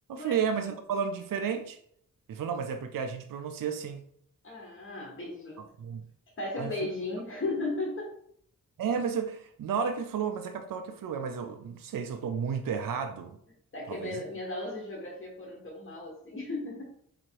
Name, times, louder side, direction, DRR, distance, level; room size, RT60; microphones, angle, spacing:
voice 1, 0.1-1.8 2.3-4.0 5.8-6.1 6.6-6.7 8.8-13.4 13.9-14.2, right 6 dB, 80° right, 0.5 m, -32 dB
voice 2, 4.4-5.7 6.4-8.1 13.7-16.8, left 2 dB, 40° left, 1.2 m, -35 dB
3.5 x 3.2 x 4.5 m
wide cardioid pair, 115°, 33 cm